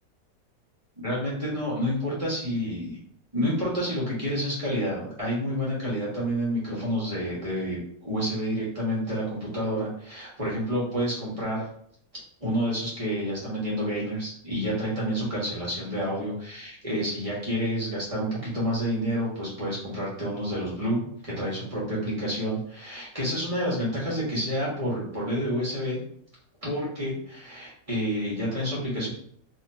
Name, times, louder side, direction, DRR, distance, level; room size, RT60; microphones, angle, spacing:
voice 1, 1.0-3.0 3.3-11.7 12.4-26.0 26.6-29.1, equal, 25° right, -6 dB, 1.4 m, -29 dB
3.5 x 2.9 x 2.7 m, 0.63 s
omnidirectional pair, 1.5 m